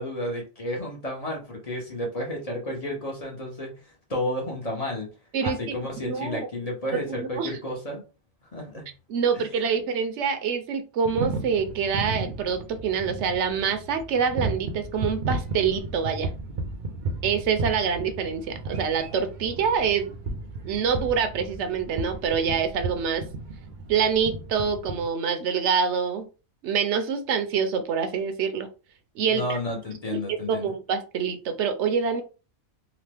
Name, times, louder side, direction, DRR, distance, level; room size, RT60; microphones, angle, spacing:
voice 1, 0.0-3.7 4.1-5.1 5.4-8.0 8.5-8.9 9.3-9.4 29.3-30.7, left 1 dB, 35° left, -1 dB, 0.8 m, -31 dB
voice 2, 6.0-6.4 7.1-7.5 9.1-16.3 17.2-20.1 20.6-23.2 23.9-26.2 26.6-28.7 29.2-29.6 30.1-32.2, right 6 dB, 80° right, 8 dB, 0.9 m, -26 dB
sound 1, 11.1-25.1, right 3 dB, 55° right, 0.6 m, -34 dB
2.9 x 2.1 x 3.3 m, 0.33 s
omnidirectional pair, 1.2 m